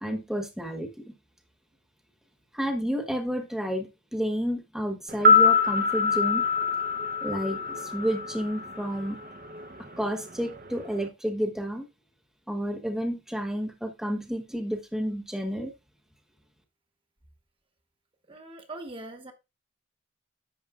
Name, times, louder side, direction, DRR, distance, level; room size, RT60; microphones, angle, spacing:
voice 1, 0.0-1.1 2.5-6.4 7.2-9.2 10.0-11.9 12.5-15.7, equal, 5° right, 1.1 m, -31 dB
sound 1, 5.1-9.3 9.5-9.6, left 4 dB, 45° right, 0.8 m, -24 dB
voice 2, 18.3-19.3, right 2 dB, 25° right, 1.1 m, -41 dB
10.5 x 7.0 x 2.4 m
head